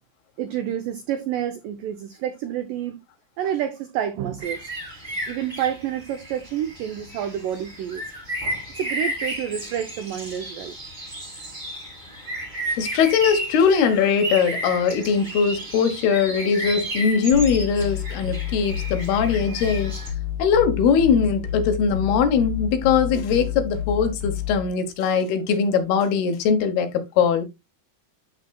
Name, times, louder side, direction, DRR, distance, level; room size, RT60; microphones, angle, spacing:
voice 1, 0.4-3.0 3.4-4.7 5.3-8.1 8.8-10.7, right 10 dB, 85° right, 1.9 m, -29 dB
sound 1, 4.4-20.1, right 1 dB, 20° right, 1.3 m, -33 dB
voice 2, 12.8-20.0 20.4-27.5, left 6 dB, 75° left, 2.9 m, -21 dB
sound 2, 17.3-24.7, left 10 dB, 60° left, 1.4 m, -30 dB
12.0 x 4.2 x 2.2 m
omnidirectional pair, 4.8 m